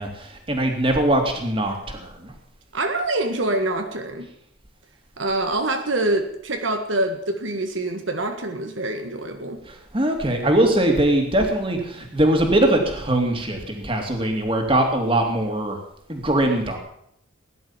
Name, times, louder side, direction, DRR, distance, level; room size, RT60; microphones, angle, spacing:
voice 1, 0.0-2.3 9.7-15.8 16.1-16.8, right 1 dB, 25° right, 3 dB, 2.7 m, -21 dB
voice 2, 2.7-4.3 5.2-9.6, right 2 dB, 80° right, 6 dB, 1.8 m, -25 dB
17.5 x 11.0 x 7.4 m, 0.74 s
head